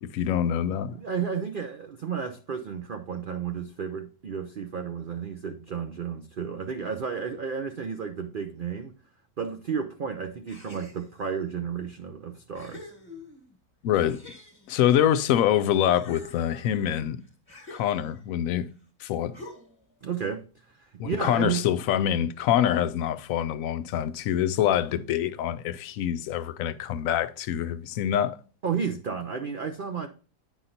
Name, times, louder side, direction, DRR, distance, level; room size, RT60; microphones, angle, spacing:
voice 1, 0.0-1.0 13.8-14.2 14.7-17.2 17.7-18.7 19.0-19.4 21.0-28.4, left 10 dB, 70° left, 0.9 m, -25 dB
voice 2, 0.9-8.9 9.4-12.9 20.0-20.4 20.8-21.7 28.6-30.1, right 6 dB, 70° right, 0.5 m, -32 dB
sound 1, 10.5-11.3 12.0-12.1 12.5-13.6 14.1-15.5 15.8-18.4 19.3-19.9, left 2 dB, 20° left, 1.3 m, -47 dB
8.9 x 5.7 x 2.6 m
omnidirectional pair, 1.7 m